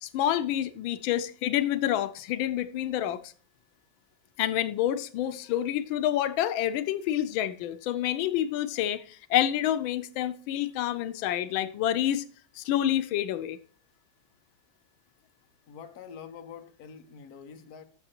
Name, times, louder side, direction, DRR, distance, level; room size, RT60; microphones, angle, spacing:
voice 1, 0.0-3.3 4.4-12.3 12.5-13.6, left 11 dB, 90° left, 1.4 m, -28 dB
voice 2, 15.7-17.8, left 7 dB, 55° left, 1.4 m, -45 dB
13.0 x 6.5 x 2.9 m
omnidirectional pair, 2.1 m